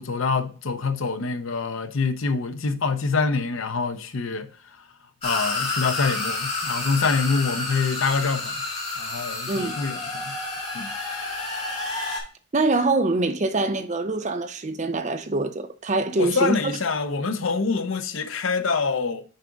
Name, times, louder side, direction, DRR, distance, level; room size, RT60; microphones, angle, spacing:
voice 1, 0.0-4.5 5.2-8.6 9.0-10.4 10.7-10.9 16.2-19.2, left 4 dB, 80° left, 0.7 m, -25 dB
sound 1, 5.2-12.2, left 3 dB, 30° left, 2.0 m, -29 dB
voice 2, 12.5-16.5, right 2 dB, 35° right, 0.6 m, -24 dB
6.6 x 4.8 x 3.9 m
head